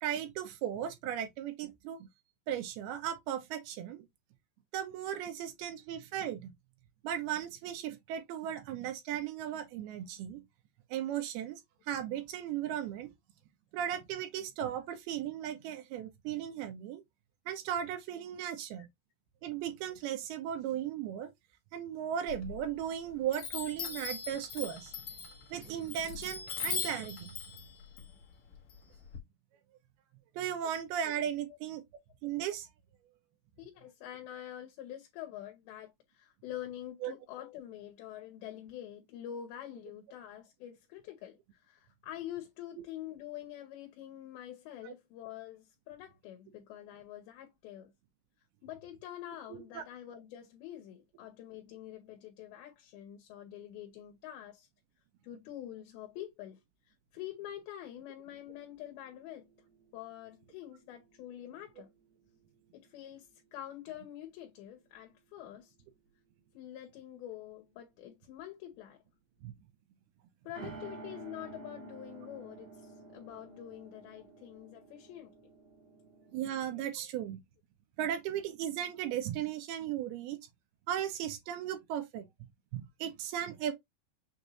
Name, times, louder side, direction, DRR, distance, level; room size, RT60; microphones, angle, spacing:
voice 1, 0.0-2.1 2.5-4.1 4.7-6.5 7.0-10.4 10.9-11.6 11.9-13.1 13.7-17.0 17.5-18.9 19.4-21.3 21.7-24.9 25.5-27.4 30.4-31.8 32.2-32.7 37.0-37.1 44.8-44.9 49.5-49.8 69.4-69.5 70.6-70.7 76.3-77.4 78.0-80.4 80.9-82.3 82.7-83.7, right 10 dB, 85° right, 2.8 m, -36 dB
Chime, 22.3-23.0 23.3-29.2, left 6 dB, 60° left, 1.5 m, -40 dB
voice 2, 33.6-47.9 48.6-54.7 55.2-56.6 56.9-59.5 59.9-61.9 62.7-65.7 66.5-69.0 70.4-75.3 76.7-77.1, left 12 dB, 80° left, 2.6 m, -46 dB
sound 1, 58.2-62.0 62.3-62.4 70.6-76.8, right 3 dB, 60° right, 1.2 m, -52 dB
6.5 x 2.6 x 3.0 m
omnidirectional pair, 4.5 m